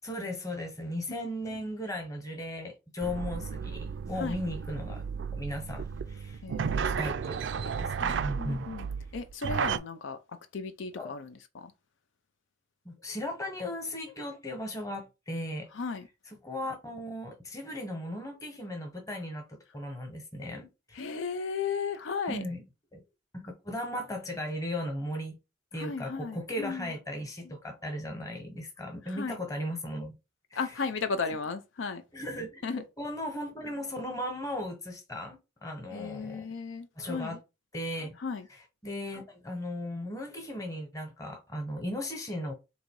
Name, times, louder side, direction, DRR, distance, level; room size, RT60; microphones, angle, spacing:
voice 1, 0.0-5.0 5.3-6.4 6.7-8.7 11.0-11.1 12.8-15.7 16.4-19.4 19.7-21.0 22.3-22.6 22.9-23.0 23.3-25.4 25.7-30.1 30.5-30.6 32.1-32.6 33.0-36.4 37.0-37.4 37.7-38.2 38.5-42.5, left 1 dB, 15° left, 1.1 m, -37 dB
sound 1, 3.0-9.8, right 6 dB, 65° right, 0.4 m, -33 dB
voice 2, 6.4-7.1 8.0-8.9 9.1-10.2 10.5-11.7 15.7-16.1 20.9-22.4 25.7-26.9 27.4-27.6 29.1-29.4 30.6-32.0 32.6-32.8 35.9-37.4 38.2-38.5, left 5 dB, 75° left, 0.5 m, -35 dB
3.8 x 2.7 x 4.6 m
head